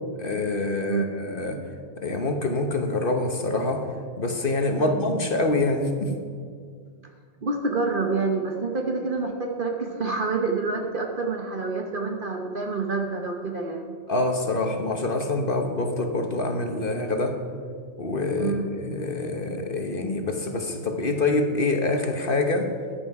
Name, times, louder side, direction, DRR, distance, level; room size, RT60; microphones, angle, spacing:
voice 1, 0.2-1.6 2.0-3.9 4.2-6.2 14.1-17.4 18.0-18.5 18.8-22.7, left 2 dB, 50° left, 4 dB, 1.3 m, -25 dB
voice 2, 7.4-13.9 18.4-18.7, right 3 dB, 50° right, 2 dB, 1.2 m, -27 dB
14.5 x 10.5 x 4.8 m, 2.1 s
omnidirectional pair, 1.2 m